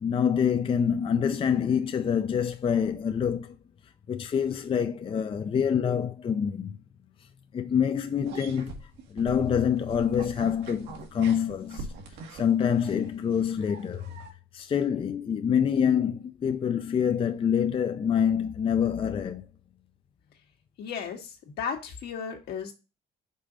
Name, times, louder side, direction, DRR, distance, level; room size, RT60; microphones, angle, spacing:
voice 1, 0.0-3.6 4.1-6.8 7.5-8.7 9.1-11.9 12.3-14.1 14.5-19.5, left 8 dB, 30° left, 0.5 m, -26 dB
Dog begs, 8.2-14.3, right 3 dB, 85° right, 1.6 m, -43 dB
voice 2, 20.8-22.7, left 6 dB, 75° left, 1.8 m, -35 dB
5.5 x 4.0 x 5.0 m
cardioid pair, 110°, 17 cm